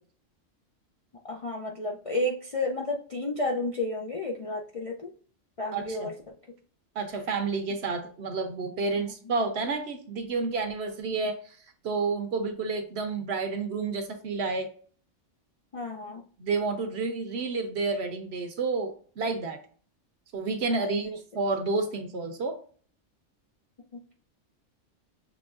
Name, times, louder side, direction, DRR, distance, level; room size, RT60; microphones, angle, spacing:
voice 1, 1.3-5.1 5.6-6.4 9.0-9.1 15.7-16.2 20.7-21.2 23.9-24.1, left 2 dB, 45° left, -1 dB, 0.4 m, -32 dB
voice 2, 5.7-6.1 6.9-11.4 11.8-14.7 16.4-19.6 20.3-22.6, right 4 dB, 60° right, 5 dB, 1.0 m, -30 dB
6.0 x 3.0 x 2.4 m, 0.43 s
omnidirectional pair, 1.3 m